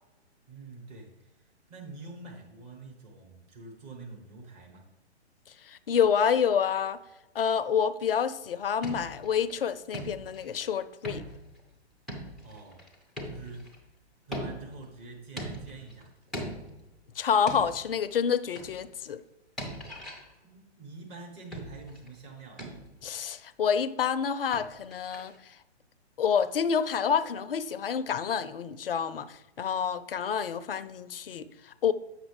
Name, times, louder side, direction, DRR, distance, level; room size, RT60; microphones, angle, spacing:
voice 1, 0.5-1.4 1.7-4.9 12.4-12.8 13.2-13.7 14.2-16.1 20.4-22.7, right 3 dB, 25° right, 1.2 m, -46 dB
voice 2, 5.6-7.0 7.3-11.2 17.2-19.2 23.0-25.3 26.2-31.9, left 7 dB, 55° left, 0.5 m, -28 dB
sound 1, 8.6-9.6 9.9-10.7 11.0-11.6 12.1-13.8 14.3-14.9 15.4-16.0 16.3-16.9 17.5-18.0 18.5-18.9 19.6-20.3 21.5-22.1 22.6-23.0 24.5-25.4, equal, ahead, 0.4 m, -40 dB
8.0 x 6.0 x 3.3 m
figure-of-eight pair, 125°, 34 cm